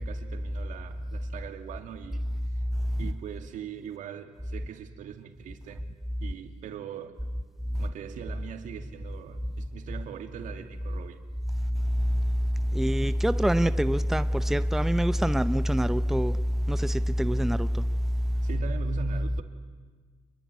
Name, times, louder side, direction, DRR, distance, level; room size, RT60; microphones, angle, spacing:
voice 1, 0.0-2.6 3.0-7.3 7.7-11.2 18.4-19.4, right 7 dB, 70° right, 2.5 m, -41 dB
voice 2, 12.7-16.3 16.7-17.7, equal, 5° right, 0.7 m, -24 dB
26.5 x 22.0 x 9.5 m
cardioid pair, 95°, 14 cm